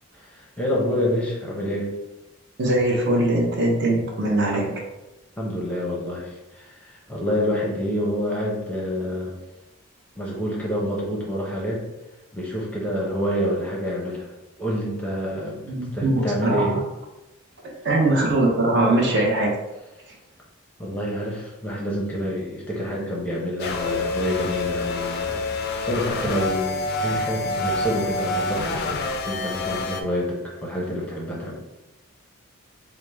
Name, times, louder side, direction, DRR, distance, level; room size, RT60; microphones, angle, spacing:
voice 1, 0.1-1.9 4.5-4.7 5.4-9.4 10.2-11.8 12.3-14.3 14.6-15.6 15.9-16.8 20.8-31.5, equal, 5° left, -4 dB, 0.6 m, -27 dB
voice 2, 2.6-4.7 15.6-16.6 17.6-19.5, right 1 dB, 50° right, -1 dB, 0.7 m, -21 dB
sound 1, 23.6-30.0, left 3 dB, 45° left, 0.3 m, -27 dB
4.6 x 2.1 x 3.3 m, 1.0 s
head